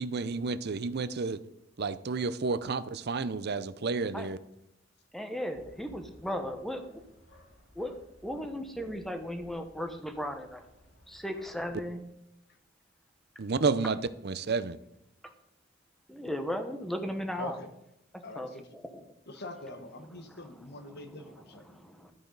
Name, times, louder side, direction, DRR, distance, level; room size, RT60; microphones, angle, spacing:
voice 1, 0.0-1.4 1.8-4.4 13.4-14.8, right 4 dB, 55° right, 15 dB, 0.6 m, -31 dB
voice 2, 5.1-7.0 7.7-8.0 8.2-10.6 11.1-12.0 16.1-17.6 18.4-19.0 20.3-20.4 21.7-22.1, equal, ahead, 6 dB, 1.1 m, -36 dB
sound 1, 5.5-11.8, left 1 dB, 85° left, 4.5 m, -58 dB
voice 3, 17.4-17.7 18.2-18.7 19.3-21.8, left 2 dB, 55° left, 7 dB, 1.3 m, -43 dB
12.5 x 8.7 x 4.0 m, 0.84 s
head